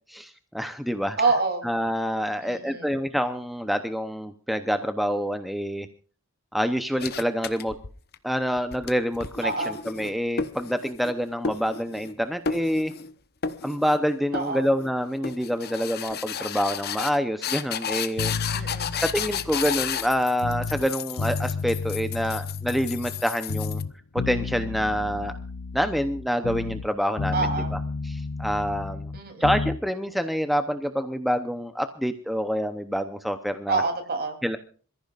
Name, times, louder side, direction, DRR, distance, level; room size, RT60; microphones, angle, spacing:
voice 1, 0.1-1.2 1.6-5.9 6.5-7.8 8.2-12.9 13.6-18.3 18.6-18.7 19.0-23.8 24.1-25.3 25.7-27.8 28.0-29.1 29.4-33.8 34.4-34.6, equal, ahead, 8 dB, 0.7 m, -27 dB
voice 2, 1.2-1.7 2.4-2.9 9.4-9.7 14.3-14.6 18.5-18.9 27.3-27.7 29.1-29.5 33.7-34.4, right 3 dB, 45° right, 5 dB, 3.3 m, -26 dB
sound 1, 7.0-8.1 8.6-11.1 11.4-12.2 12.5-13.1 13.4-14.0 14.3-14.9 15.2-23.8, left 7 dB, 50° left, 0.9 m, -33 dB
sound 2, 18.2-20.9 21.2-23.2 23.5-26.9 27.2-29.8, left 4 dB, 80° left, 0.7 m, -32 dB
27.0 x 14.5 x 2.5 m, 0.40 s
head